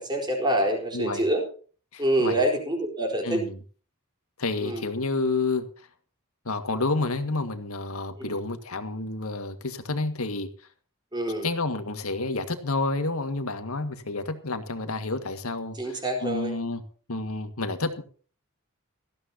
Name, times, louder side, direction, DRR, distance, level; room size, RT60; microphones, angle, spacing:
voice 1, 0.0-1.4 2.0-3.4 4.6-4.8 8.2-8.4 11.1-11.5 15.8-16.5, right 1 dB, 20° right, 2 dB, 4.2 m, -26 dB
voice 2, 0.9-1.2 1.9-2.4 3.2-3.6 4.4-5.7 6.5-10.5 11.4-16.8 17.1-18.0, left 3 dB, 80° left, 8 dB, 1.8 m, -29 dB
18.5 x 14.5 x 2.8 m, 0.40 s
head